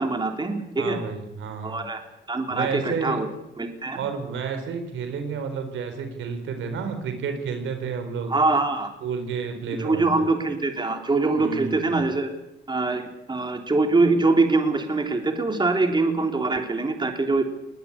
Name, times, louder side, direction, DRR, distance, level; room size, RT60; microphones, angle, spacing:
voice 1, 0.0-1.0 1.6-2.0 2.3-3.3 3.6-4.0 8.3-8.9 9.8-12.3 12.7-17.4, right 3 dB, 20° right, 5 dB, 3.5 m, -23 dB
voice 2, 0.8-1.8 2.5-3.2 4.0-8.3 9.0-10.3 11.4-12.1, right 5 dB, 75° right, 7 dB, 4.4 m, -31 dB
21.0 x 19.0 x 8.5 m, 0.87 s
cardioid pair, 90°, 20 cm